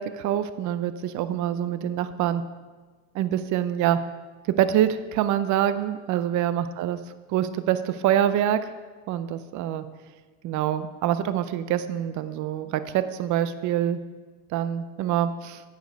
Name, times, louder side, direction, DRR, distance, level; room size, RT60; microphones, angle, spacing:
voice 1, 0.0-2.4 3.1-4.0 4.6-7.0 7.3-8.7 9.1-9.8 10.4-14.0 14.5-15.6, right 10 dB, 45° right, 12 dB, 0.6 m, -25 dB
9.2 x 5.2 x 6.3 m, 1.3 s
supercardioid pair, 125°, 41 cm